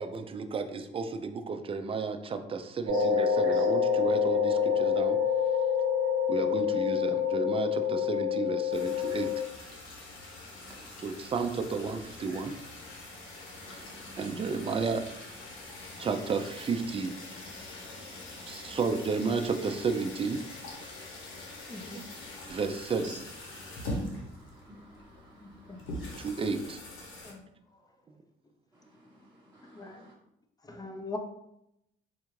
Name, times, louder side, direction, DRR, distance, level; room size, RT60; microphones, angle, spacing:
voice 1, 0.0-5.2 6.3-9.3 11.0-12.5 14.2-15.0 16.0-17.1 18.5-20.4 22.5-23.0 26.2-26.8, right 4 dB, 30° right, 0.4 m, -32 dB
voice 2, 2.9-3.8 9.1-9.3 10.5-11.3 11.8-11.9 12.2-12.5 13.6-14.9 15.9-16.3 17.2-18.8 21.5-21.9 23.0-26.5 28.7-30.1, equal, 10° right, 1.0 m, -54 dB
sound 1, 2.9-9.4, left 7 dB, 60° right, 0.9 m, -27 dB
sound 2, 8.7-27.3, left 1 dB, 85° left, 0.9 m, -43 dB
voice 3, 21.7-22.0 25.4-25.8 27.2-27.4 29.7-30.0 30.6-31.2, left 2 dB, 20° left, 0.6 m, -41 dB
4.3 x 2.4 x 3.1 m
cardioid pair, 90°, 20 cm